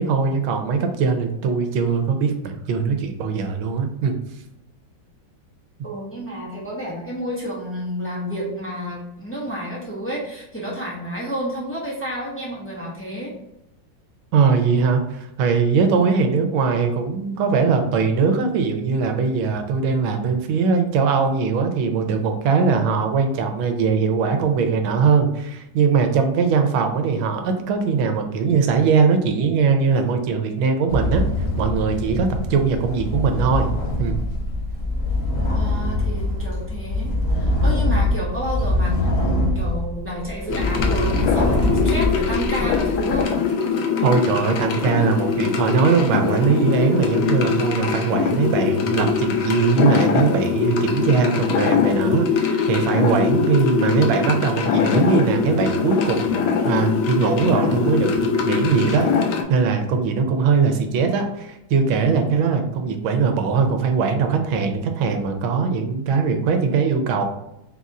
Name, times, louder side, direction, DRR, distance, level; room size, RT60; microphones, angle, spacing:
voice 1, 0.0-4.1 14.3-31.2 31.6-33.7 34.0-34.2 44.0-59.1 59.5-67.3, right 5 dB, 85° right, 6 dB, 1.4 m, -20 dB
voice 2, 5.8-13.3 35.5-43.3, right 1 dB, 15° left, -6 dB, 0.5 m, -30 dB
sound 1, 30.9-43.2, left 1 dB, 50° left, 1.0 m, -23 dB
sound 2, 40.5-59.4, left 6 dB, 80° left, 1.3 m, -22 dB
4.0 x 2.5 x 4.1 m, 0.87 s
omnidirectional pair, 2.2 m